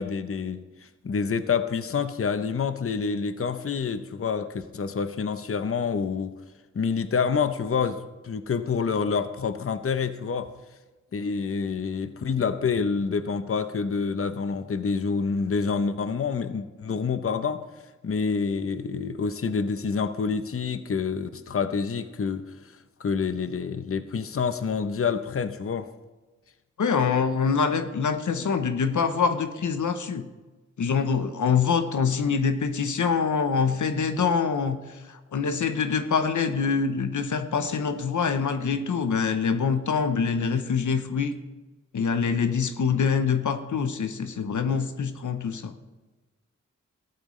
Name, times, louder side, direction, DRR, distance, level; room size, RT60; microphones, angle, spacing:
voice 1, 0.0-6.3 6.7-10.5 11.1-17.6 18.0-22.4 23.0-25.9, left 5 dB, 50° left, 11 dB, 0.7 m, -27 dB
voice 2, 26.8-30.3 30.8-41.3 41.9-45.7, left 6 dB, 85° left, 9 dB, 0.8 m, -25 dB
14.5 x 12.0 x 3.2 m, 1.2 s
cardioid pair, 50°, 29 cm